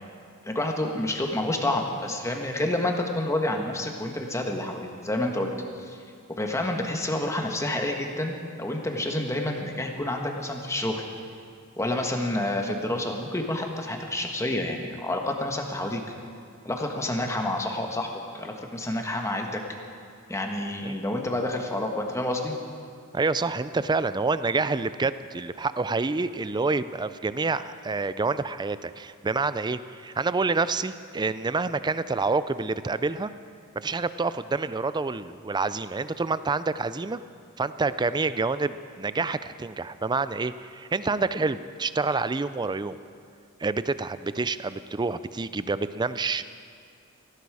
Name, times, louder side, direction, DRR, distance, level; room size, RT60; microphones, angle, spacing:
voice 1, 0.4-5.5 5.9-6.0 6.3-11.1 11.8-16.0 16.6-18.1 18.3-19.6 20.3-22.6, left 1 dB, 15° left, 2 dB, 1.4 m, -29 dB
voice 2, 23.1-33.3 33.7-37.2 37.6-43.0 43.6-46.4, right 3 dB, 20° right, 14 dB, 0.4 m, -27 dB
18.5 x 16.0 x 4.9 m, 2.2 s
head